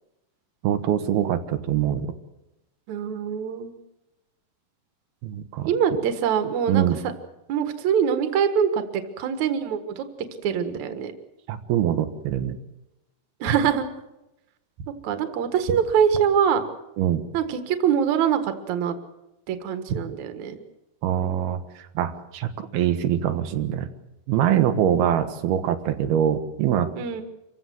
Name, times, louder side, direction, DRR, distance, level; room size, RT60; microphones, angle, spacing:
voice 1, 0.6-2.1 5.2-5.7 6.7-7.0 11.5-12.6 17.0-17.2 21.0-21.6 22.0-23.9 24.3-26.9, right 10 dB, 90° right, 7 dB, 3.2 m, -23 dB
voice 2, 2.9-3.8 5.6-6.9 7.5-10.0 10.4-11.1 13.4-13.9 15.0-16.6 17.3-19.0 19.5-20.6 24.8-25.1 27.0-27.2, right 8 dB, 60° right, 8 dB, 2.7 m, -24 dB
26.0 x 16.0 x 7.7 m, 0.95 s
omnidirectional pair, 4.3 m